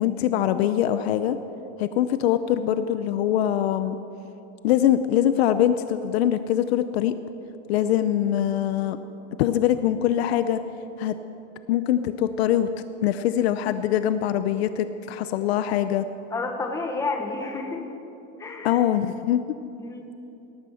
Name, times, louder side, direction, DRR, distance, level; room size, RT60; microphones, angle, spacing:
voice 1, 0.0-1.4 1.8-4.0 4.6-7.1 7.7-9.0 9.4-10.6 11.0-11.1 11.7-12.7 13.0-16.0 18.6-19.4, left 11 dB, 55° left, 11 dB, 0.6 m, -23 dB
voice 2, 16.3-17.8 18.4-18.8 19.8-20.1, left 3 dB, 10° left, 3 dB, 1.2 m, -30 dB
18.5 x 14.0 x 5.7 m, 2.9 s
supercardioid pair, 165°, 37 cm